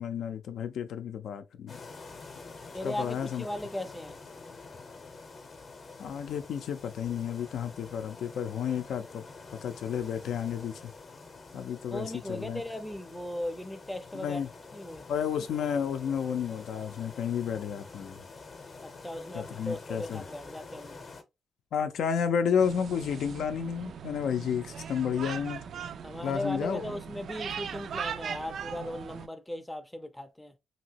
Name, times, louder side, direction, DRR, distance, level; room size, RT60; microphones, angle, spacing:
voice 1, 0.0-1.8 2.8-3.4 6.0-9.2 9.6-10.8 11.5-12.6 14.1-14.5 15.1-18.2 19.3-20.2 21.7-25.6 26.2-26.8, left 7 dB, 80° left, 0.5 m, -31 dB
sound 1, 1.7-21.2, left 4 dB, 40° left, 0.7 m, -47 dB
voice 2, 2.7-4.2 11.9-14.4 14.7-15.1 18.8-21.1 26.0-30.5, left 1 dB, 5° left, 0.5 m, -37 dB
sound 2, 22.6-29.3, right 7 dB, 60° right, 0.3 m, -39 dB
2.9 x 2.8 x 2.8 m
cardioid pair, 120°, 0 cm